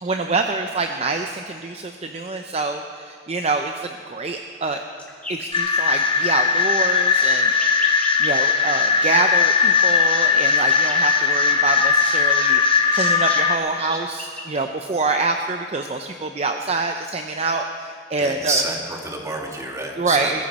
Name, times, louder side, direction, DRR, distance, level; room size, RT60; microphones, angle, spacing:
voice 1, 0.0-4.8 5.3-7.5 7.9-18.6 20.0-20.5, right 3 dB, 35° right, 5 dB, 0.6 m, -26 dB
sound 1, 5.0-5.6 7.1-8.4 9.9-11.2 12.6-12.7 12.8-14.6, left 2 dB, 10° left, 2.1 m, -37 dB
sound 2, 5.5-13.6, left 5 dB, 30° left, 1.0 m, -18 dB
voice 2, 18.2-20.5, right 2 dB, 20° right, 0 dB, 2.1 m, -27 dB
21.0 x 15.0 x 4.2 m, 2.3 s
head